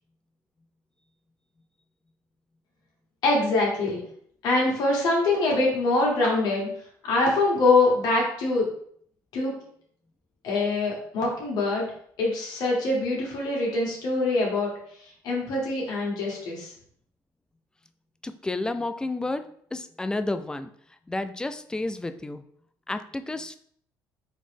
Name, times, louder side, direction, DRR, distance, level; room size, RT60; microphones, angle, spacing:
voice 1, 3.2-4.0 4.4-6.7 7.0-8.7 9.3-9.5 10.4-11.9 12.2-14.7 15.2-16.7, left 2 dB, 65° left, -2 dB, 1.6 m, -24 dB
voice 2, 18.2-20.7 21.1-22.4 22.9-23.6, left 2 dB, 10° left, 10 dB, 0.3 m, -31 dB
4.0 x 3.1 x 3.4 m, 0.62 s
cardioid pair, 95°, 7 cm